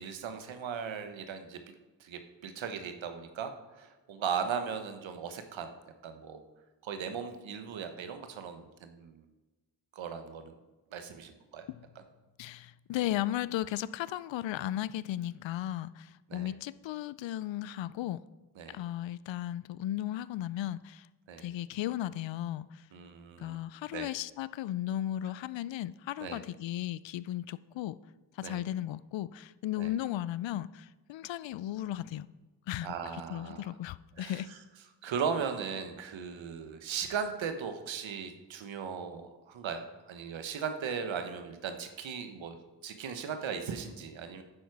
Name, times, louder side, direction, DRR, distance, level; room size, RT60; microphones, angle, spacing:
voice 1, 0.0-1.6 2.0-5.7 6.0-6.4 6.8-9.2 9.9-10.5 10.9-11.6 16.3-16.5 18.6-18.8 21.3-21.5 22.9-23.6 23.9-24.1 26.2-26.4 28.4-28.6 29.8-29.9 32.8-33.7 34.2-34.4 35.0-42.6 42.8-44.4, right 6 dB, 80° right, 8 dB, 1.1 m, -37 dB
voice 2, 12.4-18.2 18.7-21.1 21.4-22.9 23.4-28.0 28.3-32.3 32.7-34.5, left 13 dB, 75° left, 17 dB, 0.5 m, -35 dB
9.7 x 7.3 x 4.7 m, 1.1 s
cardioid pair, 55°, 45 cm